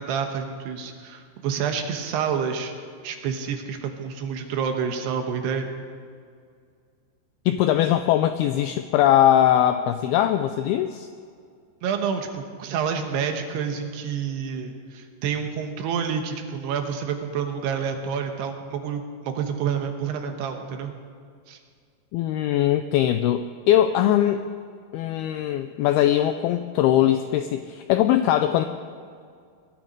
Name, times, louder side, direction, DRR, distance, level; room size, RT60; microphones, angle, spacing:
voice 1, 0.0-2.7 3.0-5.7 11.8-20.9 21.5-21.6, right 7 dB, 75° right, 5 dB, 3.1 m, -28 dB
voice 2, 7.5-11.1 22.1-24.5 24.9-28.7, left 12 dB, 85° left, 9 dB, 2.2 m, -21 dB
21.0 x 12.0 x 5.2 m, 2.2 s
omnidirectional pair, 5.0 m